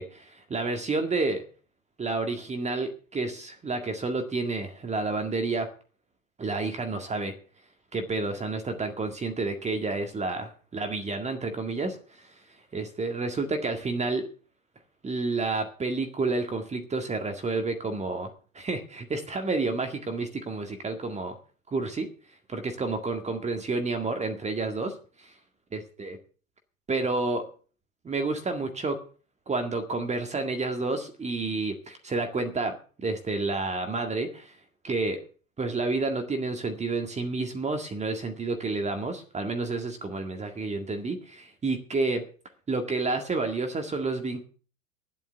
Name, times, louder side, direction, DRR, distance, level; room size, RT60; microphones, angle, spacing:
voice 1, 0.0-1.4 2.0-5.7 6.4-7.3 7.9-14.3 15.0-21.4 21.7-22.1 22.5-25.3 25.7-26.2 26.9-27.5 28.0-29.0 29.5-34.6 34.8-35.2 35.6-42.2 42.7-44.4, right 3 dB, 15° right, 6 dB, 1.9 m, -30 dB
12.0 x 8.2 x 7.9 m, 0.40 s
figure-of-eight pair, 85°, 40 cm